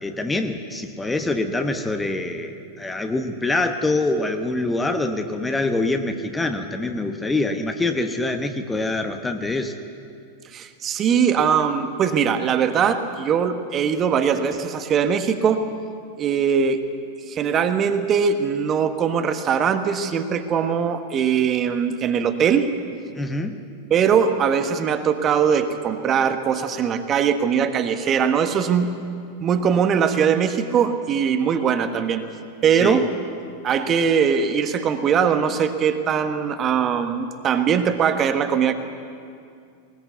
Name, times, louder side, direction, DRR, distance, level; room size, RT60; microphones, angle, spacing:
voice 1, 0.0-9.7 23.1-23.6 32.7-33.0, left 2 dB, 10° left, 6 dB, 1.1 m, -25 dB
voice 2, 10.5-15.6 16.2-16.8 17.3-22.7 23.9-28.9 29.4-32.2 32.6-33.1 33.6-38.7, right 7 dB, 30° right, 8 dB, 1.3 m, -21 dB
20.5 x 20.0 x 8.2 m, 2.4 s
figure-of-eight pair, 90°, 0 cm